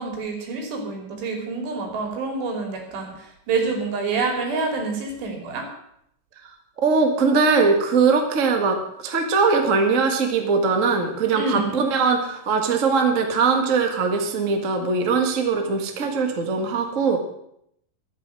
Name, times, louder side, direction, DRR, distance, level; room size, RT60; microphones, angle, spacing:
voice 1, 0.0-5.6 11.3-11.8, right 4 dB, 85° right, 2 dB, 5.1 m, -27 dB
voice 2, 6.8-17.2, right 4 dB, 70° right, 4 dB, 0.7 m, -21 dB
12.5 x 9.6 x 7.6 m, 0.74 s
omnidirectional pair, 4.7 m